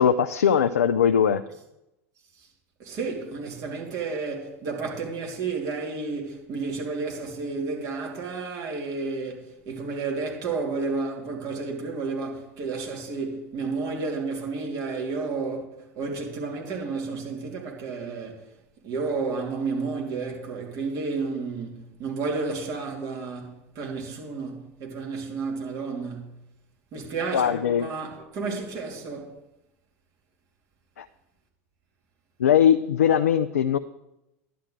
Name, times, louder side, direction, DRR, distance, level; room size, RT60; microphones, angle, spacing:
voice 1, 0.0-1.4 27.3-27.9 31.0-31.1 32.4-33.8, left 8 dB, 80° left, 0.4 m, -20 dB
voice 2, 2.8-18.4 18.8-26.4 26.9-29.4, right 4 dB, 45° right, 2.6 m, -31 dB
11.0 x 8.9 x 3.8 m
hypercardioid pair, 85°, 8 cm